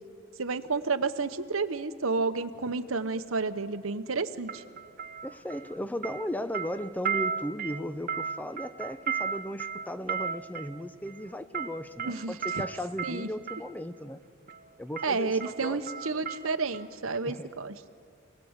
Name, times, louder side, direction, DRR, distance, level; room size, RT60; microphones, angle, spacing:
voice 1, 0.4-4.6 12.1-12.4 13.0-13.3 15.0-17.9, right 4 dB, 85° right, 10 dB, 1.0 m, -31 dB
sound 1, 2.5-2.8 4.5-5.8 6.0-13.7 14.5-14.7 15.0-16.9 17.2-17.3, right 6 dB, 45° right, 0.9 m, -36 dB
voice 2, 5.2-14.2 14.8-15.9 17.3-17.5, equal, 10° left, 12 dB, 0.6 m, -36 dB
26.0 x 18.5 x 8.1 m, 2.3 s
head